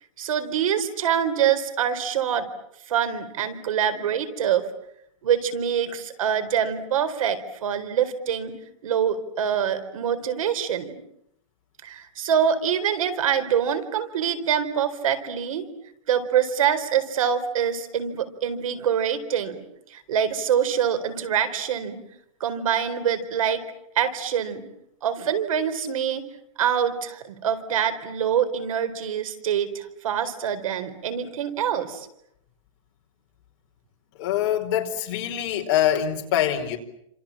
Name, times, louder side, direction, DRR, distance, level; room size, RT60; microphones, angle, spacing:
voice 1, 0.2-2.5 2.9-4.7 5.2-8.6 8.8-11.0 11.8-15.7 16.1-19.6 19.9-22.0 22.4-23.6 23.9-24.6 25.0-26.3 26.6-32.1, right 8 dB, 75° right, 10 dB, 4.4 m, -25 dB
voice 2, 34.2-36.8, left 11 dB, 35° left, 2 dB, 4.5 m, -24 dB
29.5 x 27.0 x 7.4 m, 0.76 s
supercardioid pair, 170°, 18 cm